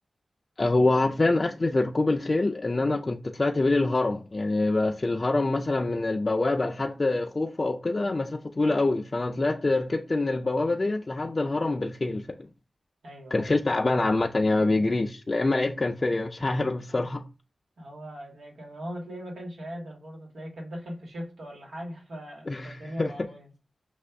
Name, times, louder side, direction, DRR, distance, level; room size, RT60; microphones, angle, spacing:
voice 1, 0.6-12.4 13.3-17.2 22.5-23.1, left 2 dB, 40° left, 0.4 m, -25 dB
voice 2, 13.0-13.6 17.8-23.5, equal, 90° right, 1.5 m, -40 dB
5.3 x 2.4 x 3.4 m
cardioid pair, 50°, 0 cm